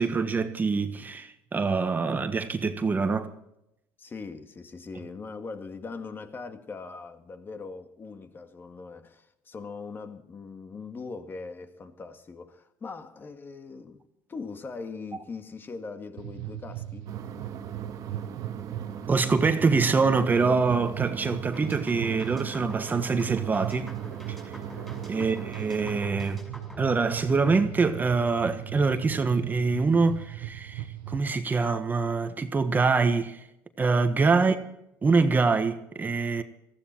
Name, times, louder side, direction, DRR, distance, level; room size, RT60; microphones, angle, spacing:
voice 1, 0.0-3.3 19.1-24.0 24.3-24.4 25.1-26.4 26.8-33.4 33.8-34.6 35.0-36.4, right 4 dB, 25° right, 1.4 m, -25 dB
voice 2, 4.0-14.0 14.3-17.1 25.1-25.4 34.3-34.6, left 4 dB, 30° left, 2.0 m, -41 dB
sound 1, 16.2-31.3, right 13 dB, 85° right, 1.0 m, -38 dB
sound 2, 17.1-26.1, right 7 dB, 50° right, 2.0 m, -41 dB
sound 3, 21.5-27.7, equal, 5° left, 6.6 m, -46 dB
18.5 x 15.5 x 4.5 m
supercardioid pair, 105°, 8 cm